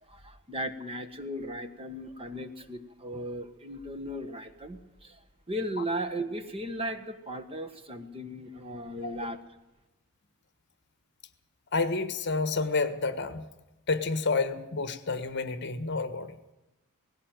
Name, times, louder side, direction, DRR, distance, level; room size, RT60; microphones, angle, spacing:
voice 1, 0.0-5.2 5.5-9.4, right 1 dB, 25° right, 8 dB, 1.4 m, -36 dB
voice 2, 11.7-13.4 13.9-16.4, left 3 dB, 50° left, 11 dB, 1.4 m, -29 dB
18.5 x 16.5 x 9.2 m, 0.99 s
head